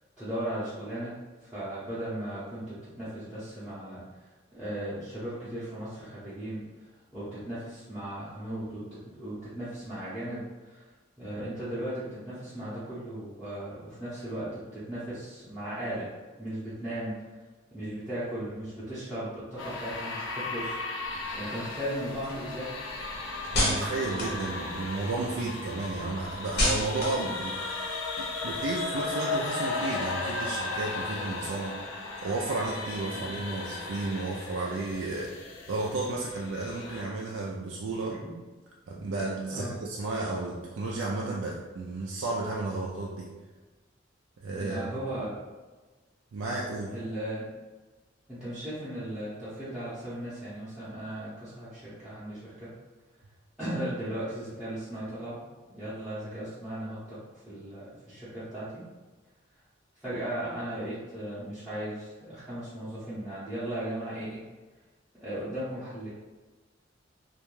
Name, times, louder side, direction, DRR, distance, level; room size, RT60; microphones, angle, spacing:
voice 1, 0.2-1.1 1.4-10.9 11.2-16.1 16.4-17.2 17.7-20.8 21.3-22.7 33.1-33.3 38.1-38.3 39.5-39.7 44.6-45.3 46.9-47.4 48.3-52.7 53.6-55.4 55.7-58.8 60.0-64.4 65.2-66.1, right 1 dB, 5° right, -14 dB, 0.7 m, -37 dB
sound 1, 19.6-37.0, left 3 dB, 90° left, 0.5 m, -36 dB
sound 2, 21.0-25.2 25.6-29.1, left 1 dB, 60° left, 0.7 m, -33 dB
voice 2, 23.5-31.8 32.2-35.4 35.7-38.2 38.9-43.3 44.4-44.9 46.3-46.9, right 3 dB, 80° right, -3 dB, 0.3 m, -33 dB
2.4 x 2.2 x 3.1 m, 1.3 s
head